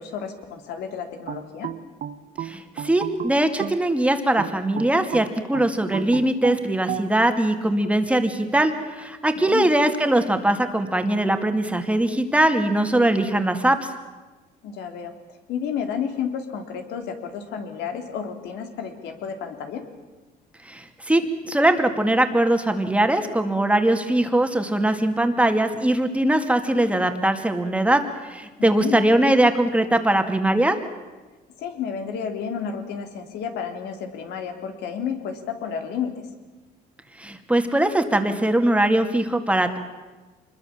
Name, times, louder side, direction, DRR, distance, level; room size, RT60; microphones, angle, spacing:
voice 1, 0.0-1.7 9.3-9.7 14.6-15.1 15.5-19.8 28.6-29.0 31.6-36.3, left 7 dB, 80° left, 6 dB, 3.2 m, -31 dB
sound 1, 1.3-3.9 4.4-7.1, right 10 dB, 55° right, 1.2 m, -33 dB
voice 2, 2.4-13.8 20.7-30.8 37.2-39.8, right 1 dB, 5° right, 6 dB, 2.3 m, -21 dB
25.5 x 21.5 x 7.3 m, 1.2 s
cardioid pair, 110°, 17 cm